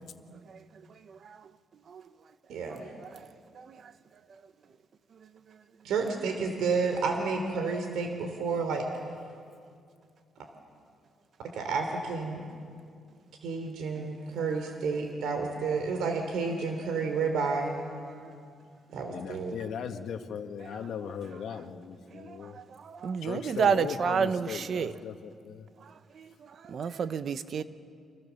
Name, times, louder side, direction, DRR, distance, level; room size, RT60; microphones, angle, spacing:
voice 1, 2.5-2.8 5.8-8.8 11.5-12.4 13.4-17.8 18.9-19.6, right 4 dB, 85° right, 3.3 m, -30 dB
voice 2, 19.1-22.6 23.2-25.7, left 7 dB, 70° left, 1.8 m, -38 dB
voice 3, 22.1-24.9 26.2-26.3 26.7-27.6, right 6 dB, 50° right, 1.0 m, -30 dB
30.0 x 26.5 x 7.2 m
cardioid pair, 135°, 0 cm